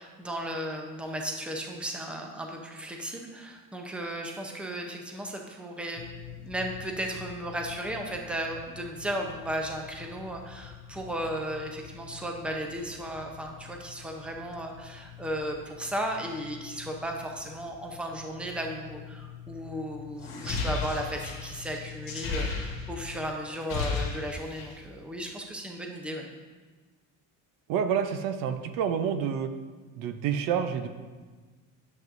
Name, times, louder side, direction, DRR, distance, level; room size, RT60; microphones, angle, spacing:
voice 1, 0.0-6.0 6.4-26.2, right 1 dB, 5° right, 2 dB, 0.6 m, -35 dB
sound 1, 6.0-23.3, left 11 dB, 75° left, 0.5 m, -47 dB
sound 2, 20.2-23.1 23.5-24.8, left 4 dB, 40° left, 1.7 m, -33 dB
voice 2, 27.7-29.5 30.0-30.9, right 8 dB, 80° right, 8 dB, 0.7 m, -28 dB
10.5 x 7.5 x 2.6 m, 1.4 s
cardioid pair, 155°, 33 cm